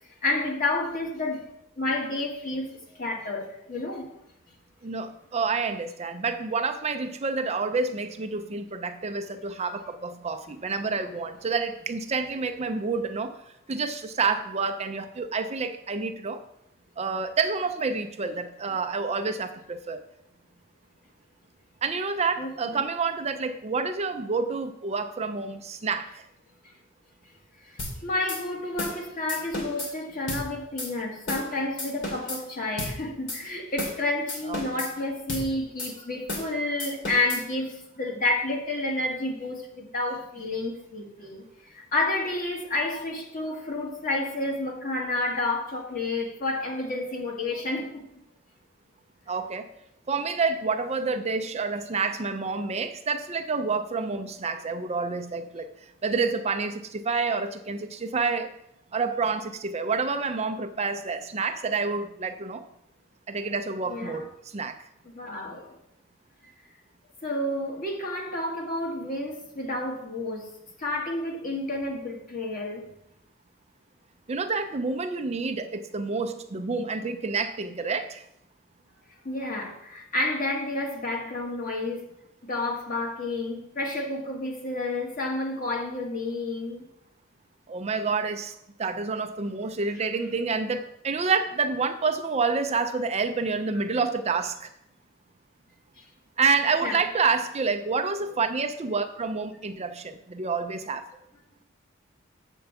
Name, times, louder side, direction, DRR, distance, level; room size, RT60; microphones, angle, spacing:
voice 1, 0.0-1.5 1.8-4.1 22.4-22.8 27.6-48.0 63.9-64.2 65.1-65.7 67.2-70.5 70.8-72.9 79.2-82.1 82.5-86.8 90.0-90.1 96.8-97.0, left 2 dB, 45° left, 0 dB, 1.9 m, -30 dB
voice 2, 4.8-13.3 13.7-16.4 17.0-20.0 21.8-26.3 34.5-34.8 49.3-49.7 50.1-55.7 56.0-58.5 58.9-62.6 63.3-64.8 74.3-78.2 87.7-88.5 88.8-94.7 96.4-101.1, right 4 dB, 35° right, 8 dB, 0.5 m, -28 dB
sound 1, 27.8-27.9 28.3-28.4 28.8-29.0 29.3-29.9 30.3-30.4 30.8-30.9 31.3-31.5 31.8-32.4 32.8-32.9 33.3-33.4 33.8-34.0 34.3-34.9 35.3-35.5 35.8-35.9 36.3-36.5 36.8-37.4, left 1 dB, 65° left, 2.7 m, -33 dB
7.8 x 4.6 x 7.0 m, 0.79 s
head